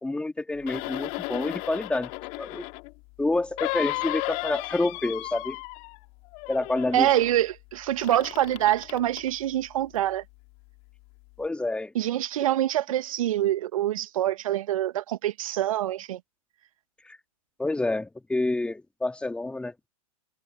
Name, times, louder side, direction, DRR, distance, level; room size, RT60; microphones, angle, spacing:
voice 1, 0.0-2.1 2.4-2.6 3.2-5.6 6.5-7.1 11.4-11.9 17.0-17.2 17.6-19.9, left 2 dB, 5° left, 2.6 m, -28 dB
sound 1, 0.6-2.9 3.6-6.1 6.3-7.3 8.0-9.3 9.9-10.0, left 29 dB, 40° left, 3.1 m, -34 dB
voice 2, 6.9-10.2 11.9-16.2, right 13 dB, 60° right, 1.2 m, -25 dB
figure-of-eight pair, 105°, 19 cm